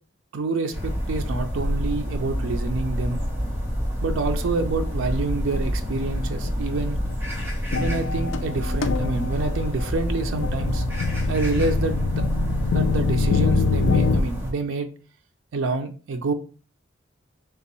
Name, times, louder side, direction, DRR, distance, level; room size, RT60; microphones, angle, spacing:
voice 1, 0.3-3.2 4.0-7.0 7.8-10.8 11.3-12.2 12.7-14.9 15.5-16.3, right 3 dB, 90° right, 6 dB, 0.4 m, -27 dB
sound 1, 0.7-14.5, equal, 10° right, 1.0 m, -27 dB
sound 2, 5.5-5.8 6.4-6.6 6.8-14.2, left 4 dB, 80° left, 0.4 m, -25 dB
3.6 x 2.9 x 3.0 m, 0.37 s
head